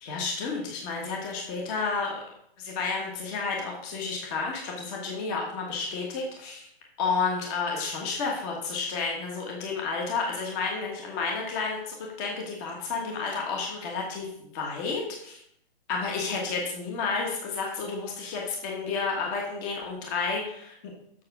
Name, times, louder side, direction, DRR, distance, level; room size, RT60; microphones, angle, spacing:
voice 1, 0.0-2.1 2.6-6.7 7.0-14.3 14.5-15.4 15.9-20.7, left 4 dB, 20° left, 0 dB, 1.4 m, -31 dB
7.7 x 5.9 x 5.9 m, 0.72 s
hypercardioid pair, 160°, 30 cm